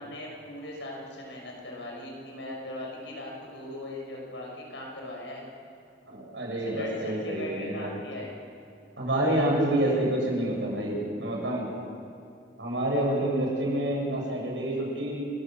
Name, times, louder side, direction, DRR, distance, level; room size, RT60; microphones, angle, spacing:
voice 1, 0.0-5.4 6.7-8.3 9.2-9.9, left 1 dB, 80° left, -2 dB, 6.0 m, -40 dB
voice 2, 6.1-7.9 9.0-11.7 12.6-15.2, right 1 dB, 80° right, -2 dB, 7.3 m, -28 dB
29.0 x 14.0 x 7.7 m, 2.5 s
head